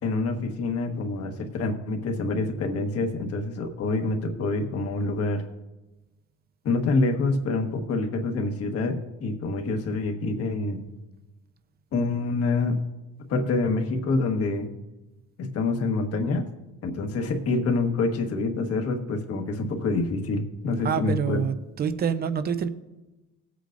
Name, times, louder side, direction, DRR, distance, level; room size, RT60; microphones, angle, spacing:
voice 1, 0.0-5.4 6.6-10.8 11.9-12.8 13.3-14.7 15.4-16.5 16.8-21.4, left 3 dB, 50° left, 1.4 m, -26 dB
voice 2, 20.8-22.7, right 7 dB, 30° right, 0.6 m, -27 dB
19.0 x 8.3 x 2.6 m
cardioid pair, 155°, 30 cm